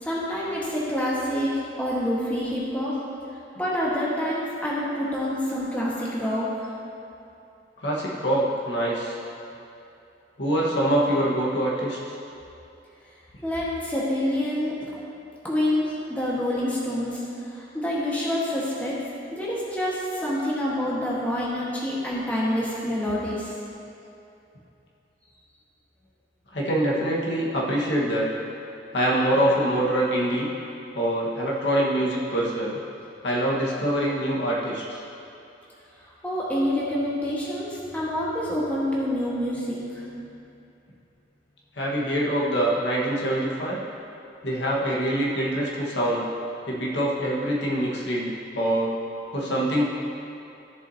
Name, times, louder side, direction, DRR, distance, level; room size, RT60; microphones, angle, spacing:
voice 1, 0.0-3.0 3.6-6.6 13.4-14.9 15.4-17.2 17.5-19.0 19.3-23.5 36.2-40.1, left 1 dB, 10° left, -7 dB, 1.5 m, -27 dB
voice 2, 7.8-9.2 10.4-12.0 26.5-28.3 28.9-30.5 30.9-32.8 33.2-35.0 41.7-43.8 44.4-46.3 46.7-48.9 49.3-49.8, right 1 dB, 65° left, -5 dB, 1.5 m, -24 dB
14.0 x 7.0 x 2.8 m, 2.8 s
head